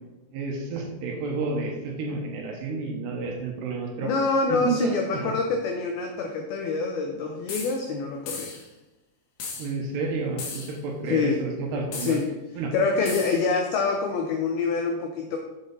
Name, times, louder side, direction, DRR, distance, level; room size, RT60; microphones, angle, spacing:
voice 1, 0.3-4.1 4.5-5.3 9.6-12.2 12.6-12.7, right 4 dB, 70° right, 0 dB, 3.1 m, -30 dB
voice 2, 4.0-8.6 11.1-11.4 12.0-12.3 12.7-15.4, left 4 dB, 90° left, 3 dB, 2.1 m, -26 dB
sound 1, 7.5-7.8 8.3-8.6 9.4-9.7 10.4-10.8 11.9-12.2 13.1-13.4, left 4 dB, 70° left, 1.7 m, -35 dB
7.9 x 7.5 x 4.1 m, 1.0 s
omnidirectional pair, 5.3 m